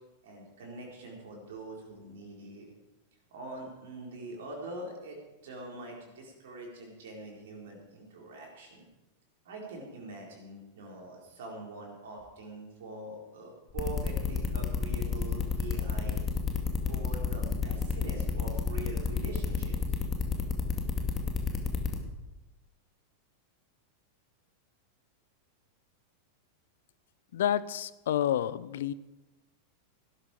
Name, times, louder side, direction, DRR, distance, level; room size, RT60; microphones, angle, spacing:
voice 1, 0.2-2.7 3.3-8.8 9.4-16.2 16.9-20.0, right 2 dB, 55° right, -1 dB, 4.3 m, -44 dB
sound 1, 13.8-22.0, left 5 dB, 20° left, 2.2 m, -30 dB
voice 2, 27.3-28.9, left 10 dB, 60° left, 18 dB, 0.6 m, -29 dB
17.5 x 12.0 x 5.0 m, 1.0 s
figure-of-eight pair, 90°, 0 cm